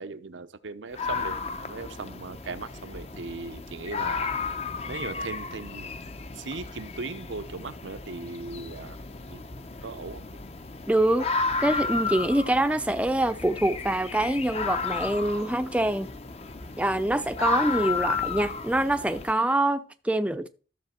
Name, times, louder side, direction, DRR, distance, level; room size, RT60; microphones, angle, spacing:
voice 1, 0.0-4.3 4.8-5.9 6.4-9.0 9.3-9.4 9.8-10.2, right 3 dB, 90° right, 0.8 m, -38 dB
sound 1, 0.9-19.3, left 4 dB, 35° left, 0.7 m, -33 dB
voice 2, 10.9-11.3 11.6-16.1 16.8-20.5, right 1 dB, 5° right, 0.5 m, -25 dB
13.5 x 6.8 x 4.3 m
head